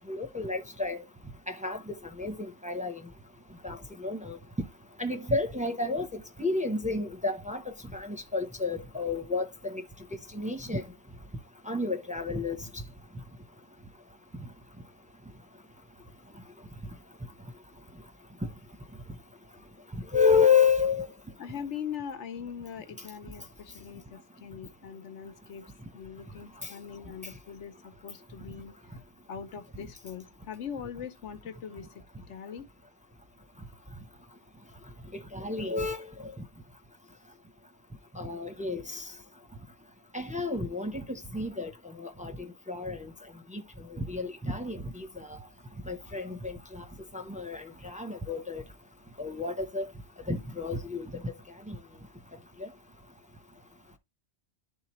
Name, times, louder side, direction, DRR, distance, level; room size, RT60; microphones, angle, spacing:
voice 1, 0.1-1.0 1.5-1.8 2.2-3.0 3.6-4.4 5.0-6.1 6.4-9.8 10.3-10.8 11.7-12.6 20.1-21.1 35.1-36.1 38.2-39.0 40.1-41.0 41.3-41.7 42.0-42.3 42.7-43.1 43.5-43.6 43.9-45.3 45.9-46.8 47.1-48.6 49.2-49.9 50.3-51.3 51.7-51.8, left 4 dB, 10° right, 0.6 m, -30 dB
voice 2, 21.4-25.7 25.9-28.7 29.3-32.7, left 7 dB, 85° left, 1.1 m, -41 dB
11.5 x 3.8 x 3.0 m
omnidirectional pair, 1.2 m